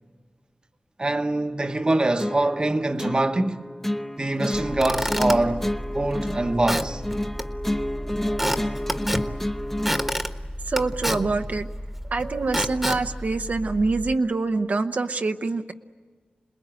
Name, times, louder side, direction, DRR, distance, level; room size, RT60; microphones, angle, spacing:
voice 1, 1.0-3.6 4.2-7.0, right 2 dB, 30° right, 1.1 m, -24 dB
sound 1, 2.2-10.2, left 1 dB, 10° left, 0.9 m, -30 dB
Squeak / Wood, 4.5-14.1, equal, 5° right, 1.3 m, -30 dB
voice 2, 10.7-11.7 12.1-15.7, right 3 dB, 60° right, 0.9 m, -25 dB
28.0 x 21.0 x 9.0 m
wide cardioid pair, 95°, 3 cm